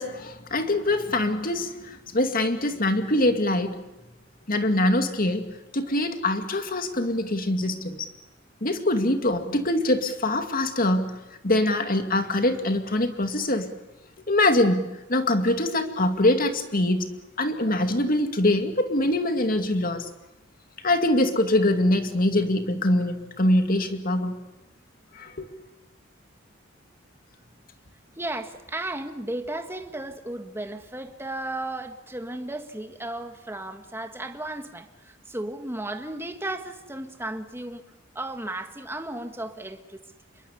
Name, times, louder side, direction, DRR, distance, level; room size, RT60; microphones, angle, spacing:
voice 1, 0.0-3.8 4.5-8.1 8.6-11.2 11.4-13.7 14.3-20.1 20.8-24.3 25.1-25.5, left 1 dB, 45° left, 2.4 m, -24 dB
voice 2, 28.2-37.8 38.1-40.0, right 1 dB, 10° right, 1.7 m, -34 dB
27.0 x 22.5 x 7.0 m
head